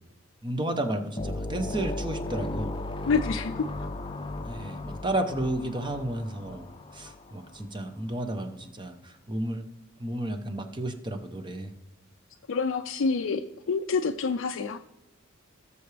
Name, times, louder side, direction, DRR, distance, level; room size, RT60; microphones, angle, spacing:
voice 1, 0.4-2.7 4.4-6.7 6.9-9.6 10.0-11.7, right 1 dB, 25° right, 7 dB, 0.9 m, -32 dB
sound 1, 1.2-7.6, left 2 dB, 25° left, 0.6 m, -36 dB
voice 2, 3.0-3.5 12.5-14.8, left 4 dB, 65° left, 5 dB, 0.4 m, -27 dB
18.0 x 6.9 x 3.4 m, 1.0 s
head